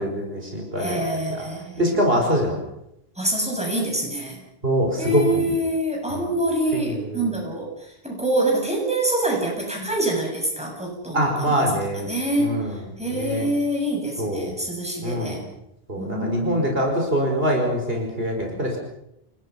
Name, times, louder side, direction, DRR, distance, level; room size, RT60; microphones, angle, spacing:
voice 1, 0.0-1.0 1.3-1.4 1.8-2.6 4.6-5.5 6.1-6.3 6.7-7.3 11.1-12.1 12.4-12.8 13.1-13.5 14.2-14.5 15.0-15.4 15.9-18.8, equal, 70° right, 1 dB, 5.3 m, -24 dB
voice 2, 0.8-2.0 3.2-4.4 5.0-11.7 11.9-15.4 16.0-16.7, right 1 dB, 5° right, -1 dB, 7.6 m, -26 dB
29.5 x 19.0 x 5.8 m, 0.80 s
omnidirectional pair, 1.1 m